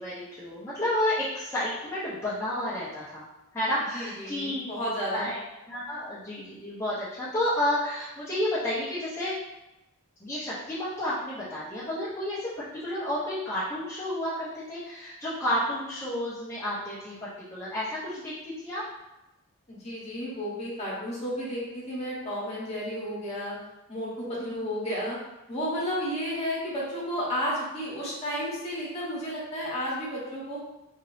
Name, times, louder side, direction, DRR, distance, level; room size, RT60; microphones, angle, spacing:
voice 1, 0.0-3.2 3.5-4.6 5.1-5.4 5.7-9.3 10.2-17.1 17.5-18.8 24.2-24.6, left 1 dB, 10° left, -13 dB, 0.9 m, -31 dB
voice 2, 3.9-5.3 19.7-23.5 23.9-25.2 25.5-30.6, equal, 30° left, -6 dB, 1.4 m, -32 dB
4.1 x 3.6 x 2.8 m, 0.97 s
head